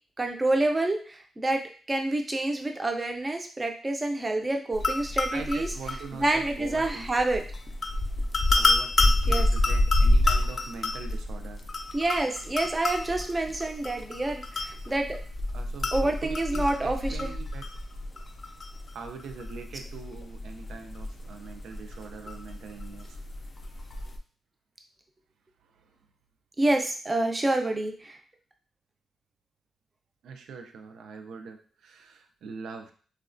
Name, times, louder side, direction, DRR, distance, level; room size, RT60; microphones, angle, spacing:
voice 1, 0.2-1.6 1.9-5.7 6.2-7.4 9.3-9.5 11.9-15.2 15.9-17.3 26.6-28.2, right 2 dB, 20° right, 4 dB, 0.4 m, -27 dB
sound 1, 4.7-24.2, left 2 dB, 40° left, 0.4 m, -28 dB
voice 2, 5.3-7.1 8.6-11.7 15.5-17.6 18.9-23.2 25.6-25.8 30.2-32.9, right 5 dB, 85° right, 6 dB, 0.4 m, -42 dB
3.0 x 2.2 x 2.5 m, 0.41 s
cardioid pair, 105°, 0 cm